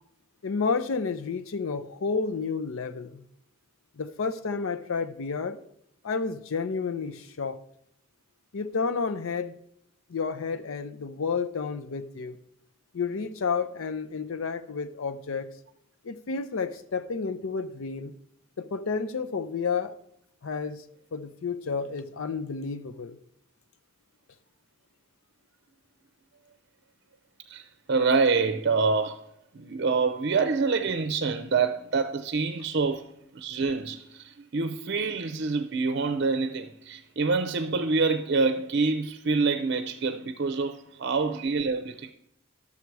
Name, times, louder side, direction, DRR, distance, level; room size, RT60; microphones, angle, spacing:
voice 1, 0.4-3.2 4.0-5.6 6.0-7.6 8.5-9.5 10.1-12.4 12.9-15.5 16.0-18.1 18.6-20.0 20.4-20.8 21.1-23.2, left 5 dB, 85° left, 0.5 m, -31 dB
voice 2, 27.5-29.3 29.5-42.1, right 4 dB, 55° right, 0.6 m, -26 dB
11.5 x 7.1 x 4.7 m
head